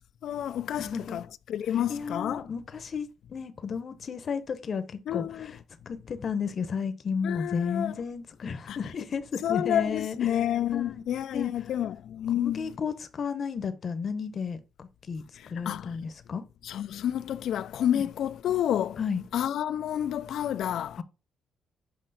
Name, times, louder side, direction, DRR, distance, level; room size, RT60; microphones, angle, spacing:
voice 1, 0.2-2.4 5.1-5.5 7.2-7.9 8.7-8.8 9.4-12.7 15.7-15.9 16.6-19.0 19.3-21.0, left 10 dB, 70° left, 0.4 m, -29 dB
voice 2, 0.8-1.2 1.9-5.5 5.9-10.3 10.7-11.0 11.3-11.5 12.4-15.2 15.5-16.4 17.9-18.1 19.0-19.2 21.0-21.1, left 6 dB, 50° left, 0.8 m, -33 dB
7.8 x 3.0 x 4.1 m
cardioid pair, 90°, 0 cm